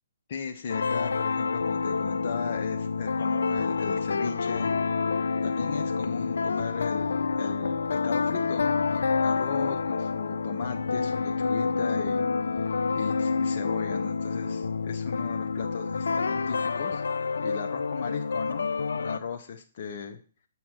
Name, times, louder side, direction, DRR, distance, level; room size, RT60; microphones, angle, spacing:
voice 1, 0.3-4.7 5.4-17.0 17.4-20.2, left 6 dB, 55° left, 4 dB, 0.8 m, -36 dB
sound 1, 0.7-19.2, left 4 dB, 75° left, 0.4 m, -28 dB
7.4 x 4.5 x 5.9 m, 0.41 s
hypercardioid pair, 135°, 0 cm